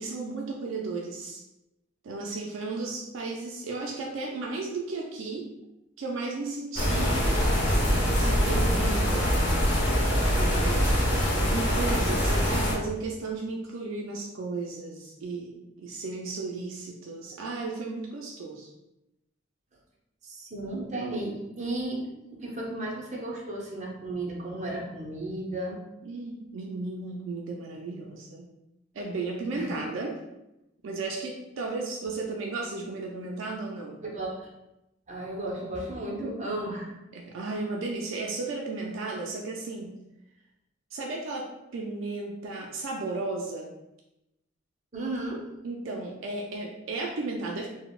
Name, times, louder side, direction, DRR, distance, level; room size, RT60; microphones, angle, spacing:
voice 1, 0.0-1.4 2.0-5.5 6.0-7.3 8.1-9.4 10.4-11.1 11.5-18.7 26.0-28.5 28.9-30.2 30.8-34.0 37.1-40.0 40.9-43.7 45.6-47.7, right 3 dB, 80° right, -1 dB, 0.4 m, -34 dB
sound 1, 6.8-12.7, equal, 70° left, 0.9 m, -24 dB
voice 2, 20.2-25.8 29.5-29.8 34.0-34.4 35.1-37.0 44.9-45.5, right 1 dB, 40° right, -3 dB, 0.7 m, -34 dB
3.9 x 2.1 x 2.3 m, 0.92 s
head